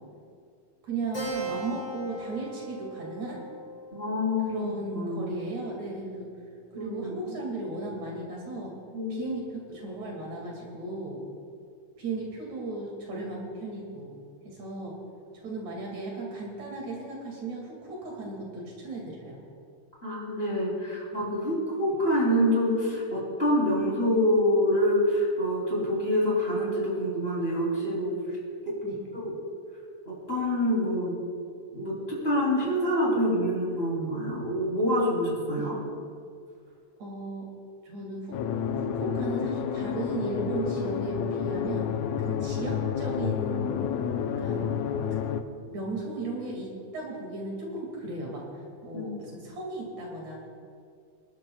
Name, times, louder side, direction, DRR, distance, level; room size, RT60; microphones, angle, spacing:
voice 1, 0.8-3.4 4.5-6.3 6.7-8.8 9.1-11.2 12.0-14.1 14.4-14.9 15.4-19.4 21.1-21.2 21.9-22.0 28.8-29.0 35.5-35.7 37.0-37.5 37.9-38.4 38.7-41.8 42.2-43.8 44.4-44.7 45.7-50.4, right 2 dB, 60° right, -2 dB, 3.4 m, -36 dB
Keyboard (musical), 1.1-6.1, right 2 dB, 40° left, 3.8 m, -40 dB
voice 2, 3.9-5.3 6.7-7.3 8.9-9.2 20.0-28.4 29.1-29.3 30.1-31.2 31.7-35.8 48.9-49.2, equal, 20° left, -6 dB, 3.3 m, -26 dB
sound 1, 38.3-45.4, left 8 dB, 75° left, 1.8 m, -30 dB
27.0 x 11.5 x 2.3 m, 2.3 s
omnidirectional pair, 3.6 m